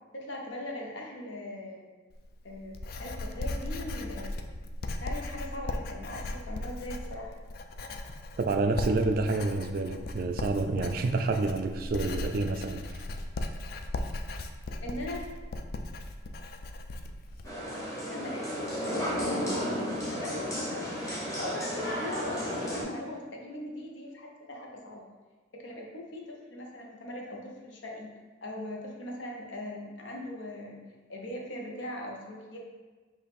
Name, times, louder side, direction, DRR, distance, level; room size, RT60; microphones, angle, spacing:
voice 1, 0.1-1.9 2.4-4.6 5.0-7.3 14.8-15.2 18.1-25.0 25.5-28.1 28.4-30.8 31.1-32.6, left 1 dB, 80° left, 0 dB, 0.8 m, -40 dB
Writing, 2.1-17.5, left 2 dB, 50° left, 0.3 m, -37 dB
voice 2, 8.4-13.0, right 3 dB, 50° right, 7 dB, 0.3 m, -28 dB
sound 1, 17.4-22.8, equal, 15° left, 1.0 m, -33 dB
5.2 x 2.5 x 4.1 m, 1.3 s
head